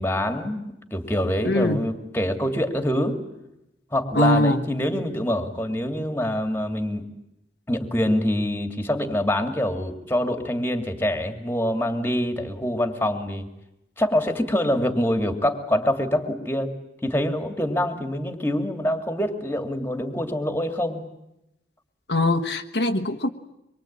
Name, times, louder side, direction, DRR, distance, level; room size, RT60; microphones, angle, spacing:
voice 1, 0.0-3.2 3.9-7.0 7.7-13.5 14.0-16.7 17.0-21.0, left 1 dB, 10° left, 7 dB, 2.4 m, -25 dB
voice 2, 1.4-1.8 4.1-4.6 22.1-23.3, left 1 dB, 65° left, 6 dB, 1.4 m, -21 dB
25.0 x 23.0 x 8.7 m, 0.86 s
head